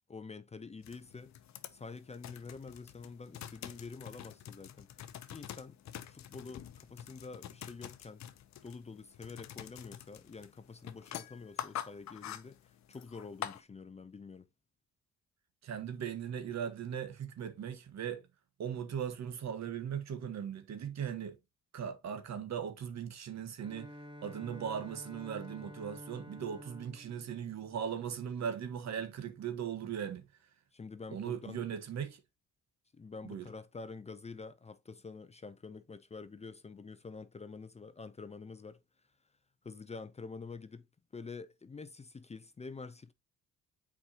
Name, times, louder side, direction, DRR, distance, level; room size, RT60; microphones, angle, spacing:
voice 1, 0.1-1.3 1.7-4.9 5.3-5.8 6.1-8.2 8.6-12.6 12.9-14.5 30.7-31.6 32.9-38.8 39.6-40.8 41.1-43.1, left 4 dB, 20° left, 0.6 m, -47 dB
sound 1, 0.8-13.6, left 11 dB, 65° left, 0.8 m, -46 dB
voice 2, 15.6-18.2 18.6-21.3 21.7-23.9 24.2-30.2 31.1-32.2 33.2-33.5, right 8 dB, 60° right, 1.4 m, -38 dB
Bowed string instrument, 23.6-28.4, equal, 15° right, 0.9 m, -51 dB
7.2 x 4.9 x 2.9 m
cardioid pair, 90°, 30 cm